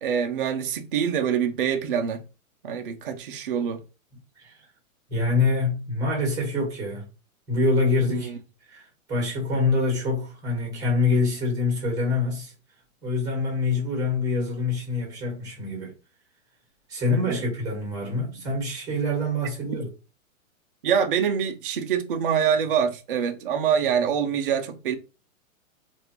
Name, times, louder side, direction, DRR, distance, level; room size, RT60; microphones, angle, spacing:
voice 1, 0.0-2.2 2.6-3.8 8.0-8.4 17.1-17.4 20.8-25.0, right 7 dB, 40° right, 0.4 m, -25 dB
voice 2, 5.1-7.0 7.5-8.3 8.7-12.5 13.0-15.9 16.9-19.9, left 3 dB, 10° right, 1.2 m, -25 dB
3.3 x 2.5 x 2.9 m
hypercardioid pair, 165°, 42 cm